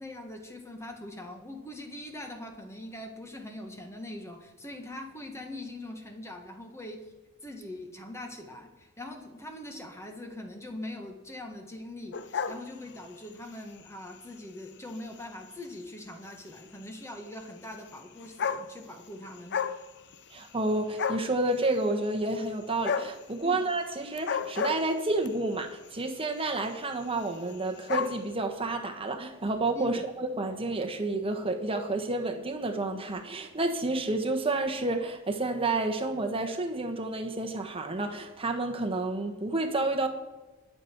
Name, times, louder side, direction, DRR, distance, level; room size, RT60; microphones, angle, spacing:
voice 1, 0.0-7.0 7.4-19.6 23.4-23.6 29.7-29.9, left 1 dB, 15° left, 1.6 m, -42 dB
sound 1, 12.1-13.3 13.9-14.1 15.0-15.1 15.2-15.3 15.6-15.7 16.9-17.0 17.9-18.0 18.2-19.0 19.3-19.8 20.1-20.7 21.0-21.4 22.8-23.2 24.1-25.3 26.2-26.4 26.7-26.8 27.0-27.1 27.3-28.2, left 6 dB, 55° left, 0.7 m, -31 dB
voice 2, 20.3-40.1, right 2 dB, 25° right, 1.3 m, -30 dB
21.0 x 7.0 x 4.6 m
head